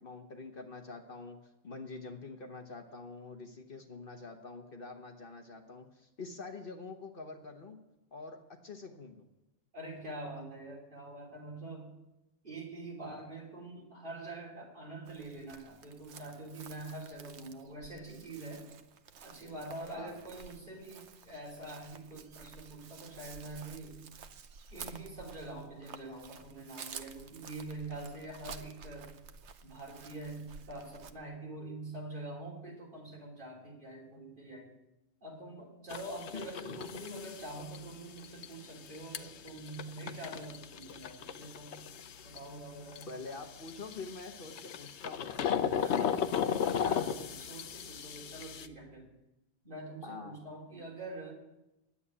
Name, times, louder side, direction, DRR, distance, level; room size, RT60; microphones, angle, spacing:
voice 1, 0.0-1.4 1.6-7.8 8.1-9.3 19.9-20.2 36.3-36.8 43.1-45.4 50.0-50.4, left 3 dB, 55° left, 5 dB, 1.2 m, -46 dB
voice 2, 9.7-11.9 12.4-18.7 19.2-24.0 24.7-29.1 29.6-34.7 35.2-41.8 42.2-43.4 45.6-49.1 49.6-51.3, right 2 dB, 45° right, -1 dB, 3.4 m, -45 dB
Chirp tweet, 15.1-31.1, right 6 dB, 75° right, 1.1 m, -51 dB
sound 1, 35.9-48.7, left 8 dB, 75° left, 1.0 m, -36 dB
10.0 x 8.3 x 9.8 m, 0.94 s
omnidirectional pair, 1.2 m